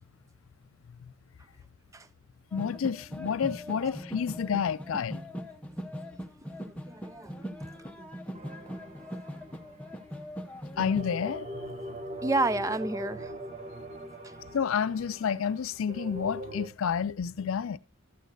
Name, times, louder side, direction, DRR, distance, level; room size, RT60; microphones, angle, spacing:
voice 1, 2.5-5.2 10.8-11.8 14.5-17.8, left 7 dB, 75° left, 0.4 m, -30 dB
sound 1, 2.5-11.0, equal, 5° left, 0.8 m, -40 dB
voice 2, 6.6-7.7 8.0-8.1 12.2-13.3 14.2-14.3, right 2 dB, 15° right, 0.4 m, -31 dB
sound 2, 8.3-10.0 10.7-16.7, right 1 dB, 30° right, 1.0 m, -41 dB
12.5 x 8.2 x 2.6 m
head